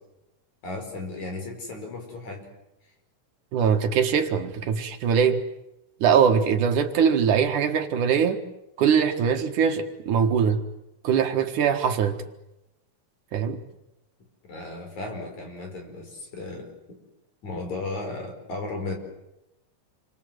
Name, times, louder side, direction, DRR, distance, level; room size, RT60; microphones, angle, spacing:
voice 1, 0.6-2.5 2.8-2.9 14.5-17.0 17.4-18.9, left 2 dB, 60° left, 6.4 m, -35 dB
voice 2, 3.5-5.4 6.0-8.4 8.8-10.6 11.0-12.2 13.3-13.6, right 7 dB, 75° right, 3.1 m, -22 dB
28.0 x 24.0 x 8.0 m
omnidirectional pair, 3.7 m